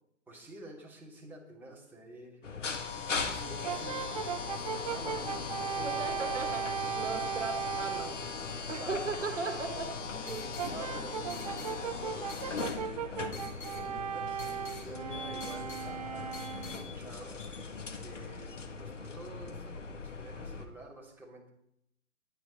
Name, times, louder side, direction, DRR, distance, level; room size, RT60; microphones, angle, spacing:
voice 1, 0.3-2.8 3.2-6.1 8.8-9.2 10.6-14.4 14.8-17.4 18.0-21.5, right 1 dB, 5° right, -4 dB, 2.9 m, -49 dB
sound 1, 2.4-20.7, left 5 dB, 70° left, 1.8 m, -39 dB
Brass instrument, 3.6-8.2 10.6-16.9, right 8 dB, 30° right, 0.4 m, -37 dB
voice 2, 5.8-8.3 8.7-10.5, right 3 dB, 70° right, 7 dB, 1.8 m, -37 dB
sound 2, 9.8-16.8, left 4 dB, 20° left, 2.4 m, -49 dB
21.5 x 9.8 x 4.2 m, 0.76 s
figure-of-eight pair, 120°, 38 cm